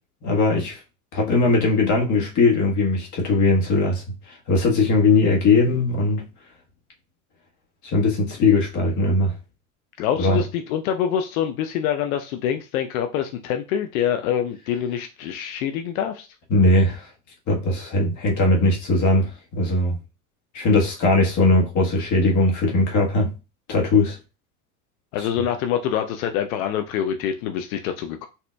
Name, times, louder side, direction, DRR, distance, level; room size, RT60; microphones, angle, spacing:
voice 1, 0.2-0.8 1.1-6.2 7.8-9.3 10.2-10.4 16.5-17.1 17.5-20.0 20.5-23.3 23.7-24.2 25.2-25.3, left 2 dB, 40° left, 1.3 m, -19 dB
voice 2, 10.0-16.3 25.1-28.3, left 9 dB, 70° left, 0.5 m, -25 dB
4.1 x 2.7 x 2.2 m
hypercardioid pair, 80°, 44 cm